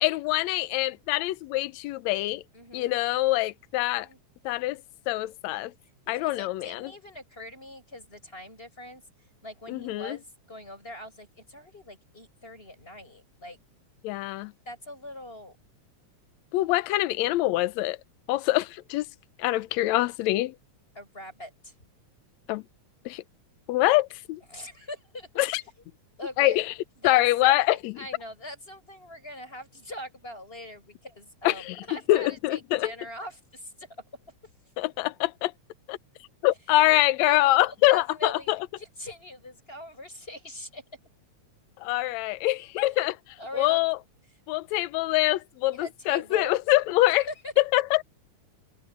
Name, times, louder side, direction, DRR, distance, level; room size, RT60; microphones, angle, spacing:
voice 1, 0.0-2.4 2.7-4.1 4.5-4.8 5.1-5.7 6.1-6.9 9.7-10.2 14.0-14.5 16.5-18.0 18.3-19.1 19.4-20.6 22.5-22.6 23.1-23.2 23.7-24.4 25.4-25.6 26.4-26.7 27.0-28.0 31.4-31.8 32.1-32.9 34.8-35.5 35.9-36.0 36.4-38.6 41.8-43.1 43.5-44.0 44.5-47.3 47.6-48.0, left 17 dB, 75° left, 1.9 m, -24 dB
voice 2, 2.5-3.0 3.9-4.2 6.1-9.0 9.4-13.6 14.7-15.6 20.9-21.7 24.5-25.3 26.2-26.6 27.0-33.9 36.9-40.8 43.0-43.1 43.4-43.8 45.7-46.6 47.1-47.5, left 1 dB, 15° left, 7.6 m, -42 dB
omnidirectional pair, 3.4 m